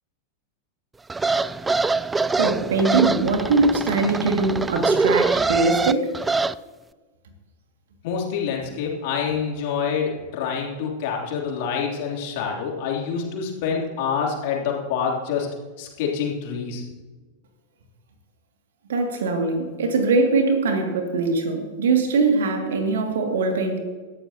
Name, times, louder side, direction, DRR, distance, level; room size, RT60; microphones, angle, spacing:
sound 1, 1.1-6.5, right 3 dB, 10° right, 0.3 m, -23 dB
voice 1, 2.4-6.1 18.9-23.8, right 3 dB, 60° right, 4 dB, 2.3 m, -22 dB
voice 2, 8.0-16.8, left 6 dB, 50° left, -1 dB, 3.1 m, -27 dB
19.5 x 14.0 x 2.9 m, 1.3 s
figure-of-eight pair, 90°, 0 cm